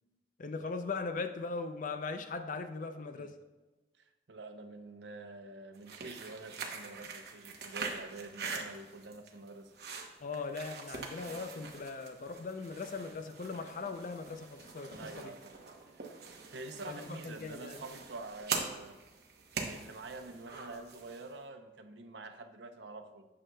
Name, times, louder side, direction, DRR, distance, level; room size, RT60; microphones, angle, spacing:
voice 1, 0.4-3.4 10.2-15.3 16.9-17.8, left 4 dB, 50° left, 8 dB, 0.5 m, -39 dB
voice 2, 4.0-9.7 15.0-15.5 16.5-19.0 19.5-23.3, right 2 dB, 85° right, 6 dB, 0.7 m, -47 dB
sound 1, 5.7-21.3, right 4 dB, 65° right, 1.0 m, -44 dB
8.8 x 6.7 x 2.3 m, 1.2 s
head